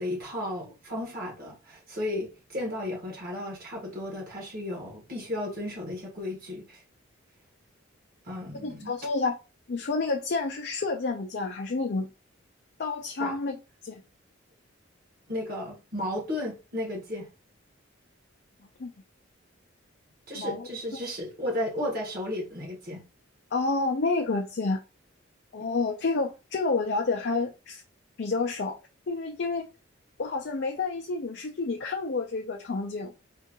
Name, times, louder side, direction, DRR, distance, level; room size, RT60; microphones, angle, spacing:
voice 1, 0.0-6.8 8.2-8.9 13.2-13.4 15.3-17.3 20.3-23.0, left 1 dB, 45° right, 1.7 m, -34 dB
voice 2, 8.6-9.4 9.7-12.1 12.8-13.6 13.8-14.0 18.8-18.9 20.3-20.7 23.5-24.8 25.5-27.8 28.2-28.8 29.1-29.7 30.2-33.1, left 3 dB, 55° left, 0.5 m, -29 dB
4.5 x 2.5 x 2.9 m
head